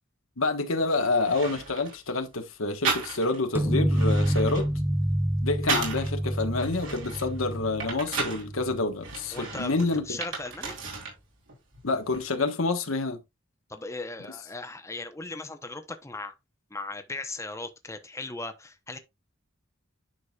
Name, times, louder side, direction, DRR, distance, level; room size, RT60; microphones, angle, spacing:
voice 1, 0.4-4.7 5.4-10.2 11.8-13.2, left 3 dB, 90° left, 1.4 m, -28 dB
sound 1, 0.8-0.9 1.2-2.0 2.8-3.5 3.8-6.1 6.6-8.5 9.0-11.2 11.5-12.3, right 4 dB, 65° right, 3.7 m, -34 dB
sound 2, 3.5-9.1, equal, 10° right, 0.5 m, -28 dB
voice 2, 9.3-9.7 10.1-10.8 13.7-16.3 16.7-19.0, left 2 dB, 15° left, 0.9 m, -37 dB
9.9 x 6.2 x 2.4 m
head